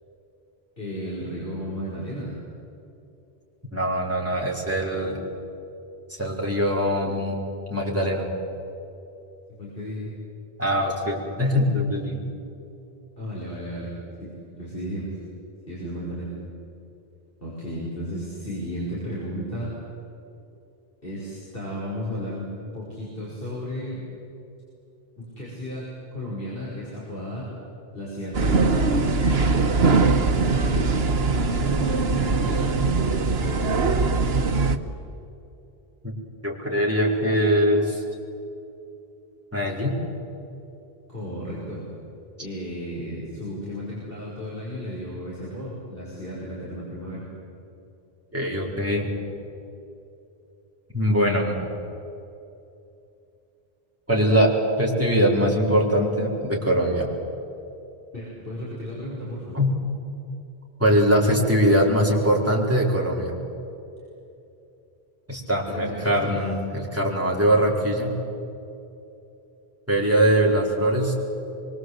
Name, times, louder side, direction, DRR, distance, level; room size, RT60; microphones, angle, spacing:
voice 1, 0.8-2.3 9.6-10.1 13.2-15.2 15.7-16.4 17.4-19.7 21.0-22.5 22.7-24.0 25.2-27.5 27.9-29.4 30.1-31.0 31.3-32.8 33.4-34.2 41.1-41.9 42.4-47.3 58.1-59.6 65.7-66.4, equal, 65° left, -6 dB, 5.9 m, -34 dB
voice 2, 3.7-5.2 6.2-7.4 7.7-8.3 10.6-12.2 36.0-36.1 36.4-38.0 39.5-40.0 48.3-49.1 50.9-51.6 54.1-54.5 54.8-57.1 59.5-59.8 60.8-63.3 65.3-68.1 69.9-71.1, equal, 15° right, -3 dB, 4.6 m, -22 dB
sound 1, 28.3-34.8, right 3 dB, 75° right, 1.4 m, -21 dB
26.0 x 23.5 x 8.1 m, 2.8 s
omnidirectional pair, 1.0 m